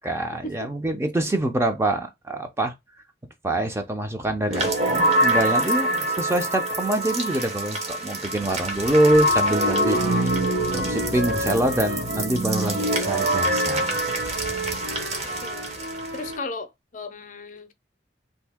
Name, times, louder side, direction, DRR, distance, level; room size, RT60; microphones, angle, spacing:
voice 1, 0.0-2.7 3.4-10.4 10.7-14.0, right 1 dB, 15° right, 0.5 m, -25 dB
sound 1, 4.5-16.4, right 1 dB, 40° right, 0.9 m, -25 dB
Wind instrument woodwind instrument, 9.0-16.4, right 3 dB, 65° right, 0.5 m, -33 dB
voice 2, 10.1-10.5 15.1-15.7 16.1-16.7 16.9-17.7, left 2 dB, 45° left, 0.5 m, -35 dB
2.7 x 2.7 x 3.4 m
head